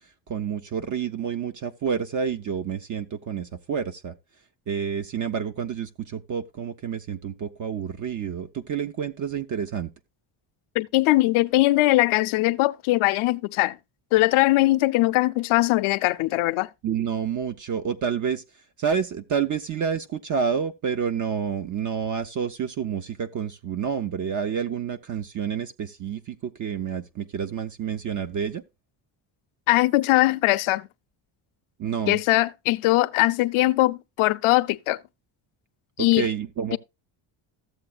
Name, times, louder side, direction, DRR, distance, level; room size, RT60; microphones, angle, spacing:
voice 1, 0.3-4.1 4.7-9.9 16.8-18.4 18.8-28.6 31.8-32.2 36.2-36.8, right 7 dB, 40° right, 0.5 m, -29 dB
voice 2, 10.7-13.8 14.1-16.7 29.7-30.9 32.1-35.0 36.0-36.3 36.7-36.8, left 19 dB, 75° left, 0.6 m, -21 dB
14.0 x 7.7 x 2.3 m
cardioid pair, 155°, 50 cm